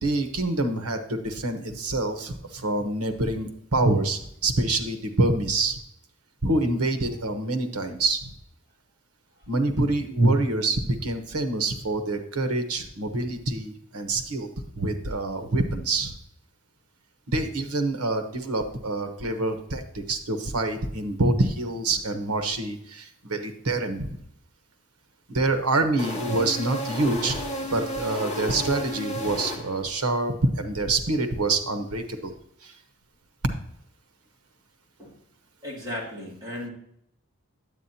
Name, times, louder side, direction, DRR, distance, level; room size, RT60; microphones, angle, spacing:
voice 1, 0.0-5.8 6.4-8.3 9.5-14.5 14.8-16.2 17.3-24.2 25.3-27.4 27.7-32.3 32.6-32.7, right 2 dB, 90° right, 7 dB, 1.0 m, -26 dB
sound 1, 26.0-30.0, equal, 30° left, 1.5 m, -33 dB
voice 2, 35.6-36.7, left 1 dB, 20° right, -6 dB, 2.6 m, -35 dB
9.3 x 8.4 x 2.8 m, 0.72 s
head